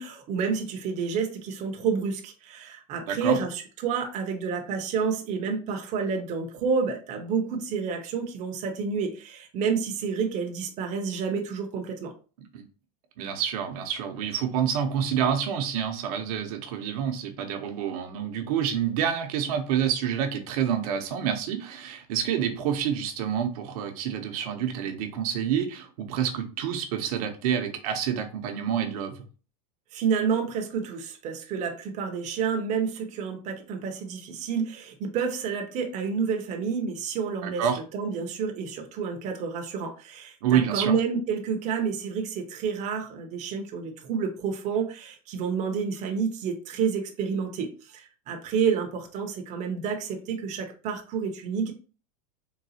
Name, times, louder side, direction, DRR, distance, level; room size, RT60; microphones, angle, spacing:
voice 1, 0.0-12.1 29.9-37.7 37.9-51.7, right 6 dB, 35° right, 3 dB, 0.7 m, -29 dB
voice 2, 3.1-3.4 12.5-12.7 13.2-29.2 37.4-37.8 40.4-40.9, right 8 dB, 70° right, 6 dB, 0.8 m, -28 dB
3.8 x 2.3 x 2.8 m, 0.36 s
supercardioid pair, 130°, 20 cm